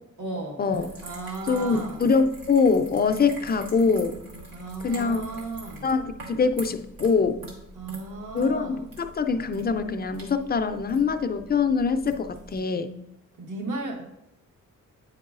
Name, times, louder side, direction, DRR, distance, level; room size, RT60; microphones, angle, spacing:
voice 1, 0.2-0.6 1.0-2.0 4.5-5.9 7.7-8.8 13.4-14.0, right 3 dB, 65° right, 2 dB, 1.1 m, -35 dB
sound 1, 0.7-12.6, right 1 dB, 90° right, 1.6 m, -44 dB
voice 2, 1.5-4.2 4.8-5.3 5.8-7.4 8.3-12.9, left 5 dB, 30° left, 9 dB, 0.4 m, -24 dB
8.6 x 4.7 x 2.4 m, 0.86 s
cardioid pair, 110°, 33 cm